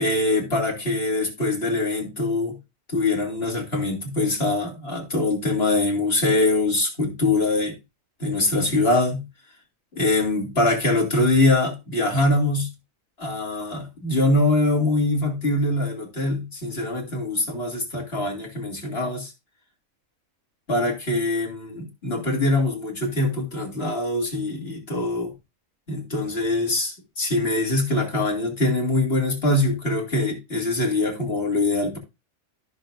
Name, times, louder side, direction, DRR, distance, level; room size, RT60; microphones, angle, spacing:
voice 1, 0.0-2.6 2.9-7.7 8.2-9.2 9.9-12.7 13.2-19.3 20.7-25.3 25.9-32.0, left 2 dB, 45° left, 2.9 m, -23 dB
14.5 x 6.6 x 2.6 m
omnidirectional pair, 1.5 m